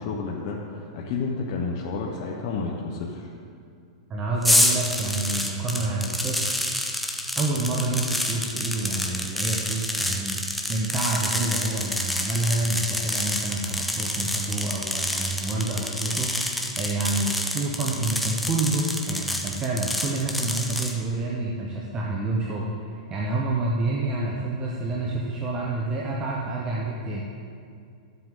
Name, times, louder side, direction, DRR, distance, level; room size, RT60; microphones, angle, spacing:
voice 1, 0.0-3.3, left 4 dB, 45° left, -1 dB, 1.0 m, -30 dB
voice 2, 4.1-6.4 7.3-22.7 23.1-27.2, right 2 dB, 25° right, -3 dB, 1.0 m, -28 dB
sound 1, 4.4-20.9, left 1 dB, ahead, 0.8 m, -28 dB
12.5 x 7.7 x 3.8 m, 2.3 s
hypercardioid pair, 140°, 3 cm